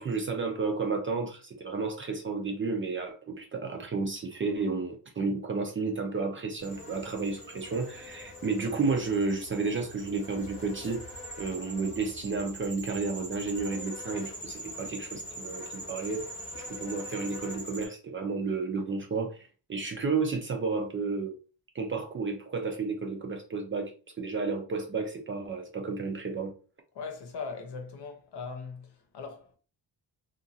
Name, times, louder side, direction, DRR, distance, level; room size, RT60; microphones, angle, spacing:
voice 1, 0.0-11.1 11.4-16.3 16.5-21.4 21.7-26.5, right 4 dB, 30° right, 0.4 m, -32 dB
sound 1, 6.6-17.9, equal, 15° left, 1.0 m, -43 dB
voice 2, 26.9-29.6, left 5 dB, 65° left, 0.8 m, -40 dB
2.8 x 2.4 x 2.6 m
cardioid pair, 140°, 44 cm